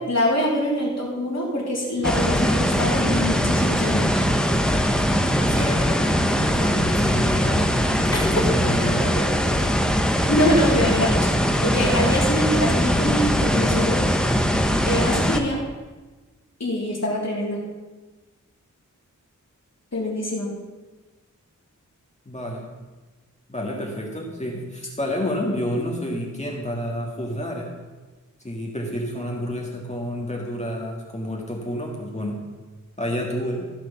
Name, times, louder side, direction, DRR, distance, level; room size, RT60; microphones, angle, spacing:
voice 1, 0.1-4.2 10.3-11.3 11.6-14.0 14.8-15.6 16.6-17.6 19.9-20.5, left 1 dB, 55° left, -4 dB, 3.3 m, -24 dB
sound 1, 2.0-15.4, equal, ahead, 1.0 m, -21 dB
voice 2, 5.3-7.7 8.0-9.2 22.3-22.7 23.5-27.7 28.4-32.4 33.0-33.7, equal, 20° left, -1 dB, 1.8 m, -29 dB
15.0 x 5.2 x 7.0 m, 1.2 s
wide cardioid pair, 90°, 31 cm